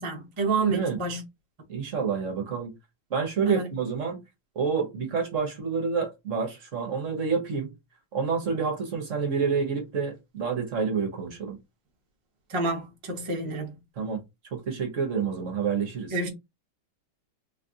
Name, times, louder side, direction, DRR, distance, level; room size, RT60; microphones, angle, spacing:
voice 1, 0.0-1.2 3.5-3.7 12.5-13.7 16.1-16.3, right 3 dB, 30° right, 0.5 m, -28 dB
voice 2, 1.7-2.7 3.1-4.2 4.5-7.7 8.1-11.6 14.0-14.2 14.5-16.2, right 5 dB, 50° right, 1.1 m, -28 dB
3.8 x 2.4 x 2.7 m
omnidirectional pair, 2.0 m